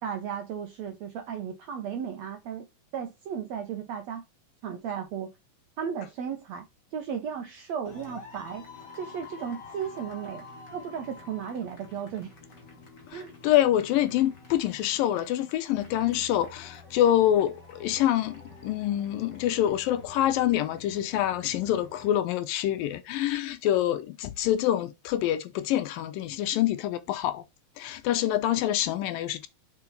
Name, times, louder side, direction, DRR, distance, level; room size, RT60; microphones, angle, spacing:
voice 1, 0.0-2.7 2.9-4.2 4.6-5.3 5.8-6.7 6.9-8.7 8.9-10.4 10.7-12.3 13.1-13.3, right 7 dB, 70° right, 1.6 m, -35 dB
sound 1, 7.8-22.1, left 4 dB, 30° left, 2.9 m, -48 dB
voice 2, 13.1-27.4 27.8-29.5, left 12 dB, 80° left, 2.4 m, -26 dB
6.9 x 5.7 x 4.1 m
omnidirectional pair, 4.1 m